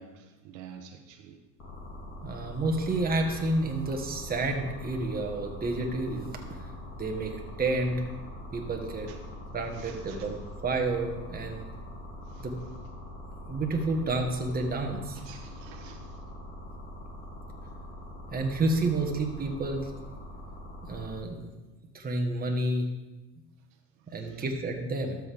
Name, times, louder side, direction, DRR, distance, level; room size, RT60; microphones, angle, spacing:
voice 1, 0.0-1.4 9.8-10.2 12.4-12.5 15.2-16.1, right 7 dB, 75° right, 4 dB, 1.1 m, -48 dB
sound 1, 1.6-21.2, left 1 dB, 35° left, 3.5 m, -43 dB
voice 2, 2.2-6.4 7.0-7.3 7.6-8.0 8.5-9.1 9.5-11.7 12.4-12.6 13.5-15.2 18.3-19.9 20.9-21.5 21.9-22.9 24.1-25.2, right 2 dB, 20° right, 2 dB, 1.5 m, -30 dB
12.5 x 6.5 x 3.5 m, 1.1 s
supercardioid pair, 100°, 41 cm